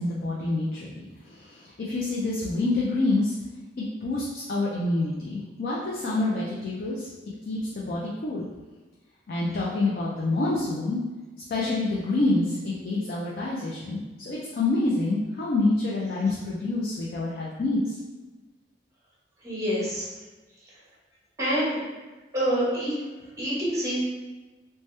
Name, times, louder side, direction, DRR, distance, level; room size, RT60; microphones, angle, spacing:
voice 1, 0.0-3.3 3.8-7.1 7.5-8.5 9.3-11.0 11.5-18.0, left 2 dB, 55° left, -5 dB, 0.4 m, -27 dB
voice 2, 19.4-20.1 21.4-21.8 22.3-22.9 23.4-24.0, equal, 15° right, -7 dB, 0.9 m, -26 dB
2.8 x 2.2 x 3.2 m, 1.2 s
head